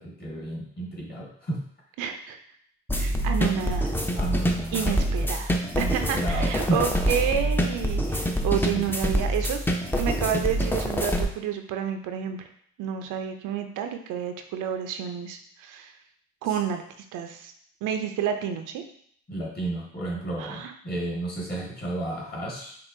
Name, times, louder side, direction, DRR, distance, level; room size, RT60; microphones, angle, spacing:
voice 1, 0.0-1.6 4.1-5.2 5.7-6.8 8.7-8.9 19.3-22.8, right 1 dB, 30° left, -3 dB, 1.5 m, -32 dB
voice 2, 2.0-2.4 3.0-3.9 4.7-9.6 10.0-12.4 12.8-15.9 16.4-16.8 17.1-17.5 17.8-18.8 20.4-20.7, right 8 dB, 85° right, 6 dB, 0.5 m, -30 dB
sound 1, 2.9-11.2, equal, 5° left, 0.4 m, -26 dB
5.3 x 2.4 x 2.6 m, 0.64 s
cardioid pair, 90°, 30 cm